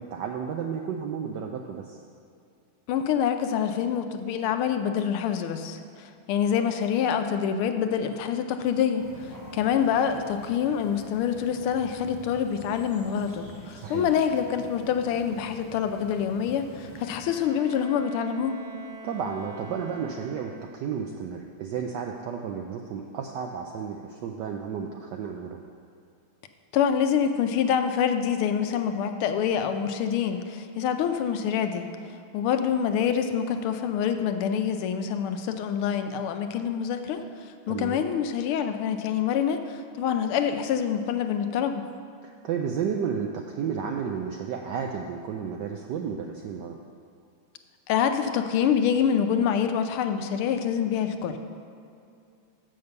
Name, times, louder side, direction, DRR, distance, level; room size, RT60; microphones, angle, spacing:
voice 1, 0.0-2.0 13.7-14.1 19.0-25.6 37.7-38.0 42.2-46.8, right 7 dB, 80° right, 2 dB, 0.9 m, -32 dB
voice 2, 2.9-18.6 26.7-31.9 32.3-37.2 37.7-41.8 47.9-51.4, left 8 dB, 80° left, 7 dB, 1.5 m, -26 dB
sound 1, 9.0-17.3, equal, 25° right, 0.4 m, -47 dB
Bowed string instrument, 16.8-20.9, right 2 dB, 5° right, 1.0 m, -45 dB
6.7 x 6.4 x 6.9 m, 2.5 s
omnidirectional pair, 2.4 m